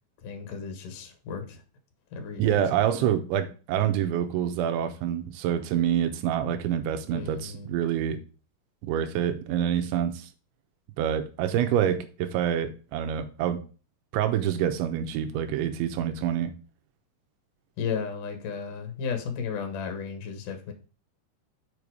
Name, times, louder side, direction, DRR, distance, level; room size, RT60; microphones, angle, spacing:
voice 1, 0.2-1.6 2.1-2.7 3.0-3.1 7.1-7.7 17.8-20.7, left 6 dB, 60° left, 2.5 m, -34 dB
voice 2, 2.4-8.2 8.8-10.3 11.0-13.6 14.1-16.5, right 10 dB, 85° right, 3.3 m, -27 dB
7.0 x 5.7 x 4.8 m
omnidirectional pair, 5.3 m